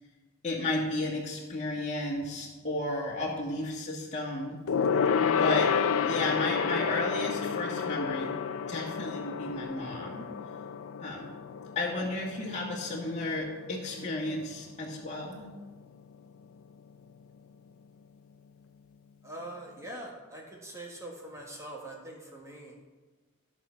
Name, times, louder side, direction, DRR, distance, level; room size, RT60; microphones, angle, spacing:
voice 1, 0.4-4.6 5.2-5.7 6.0-8.3 8.7-10.3 11.0-11.3 11.8-15.5, left 2 dB, 30° left, -5 dB, 1.9 m, -33 dB
Gong, 4.7-14.4 14.7-15.0 15.3-15.4, left 6 dB, 65° left, 0.5 m, -30 dB
voice 2, 19.2-22.8, right 1 dB, 15° right, -2 dB, 1.6 m, -43 dB
13.5 x 6.2 x 5.8 m, 1.3 s
head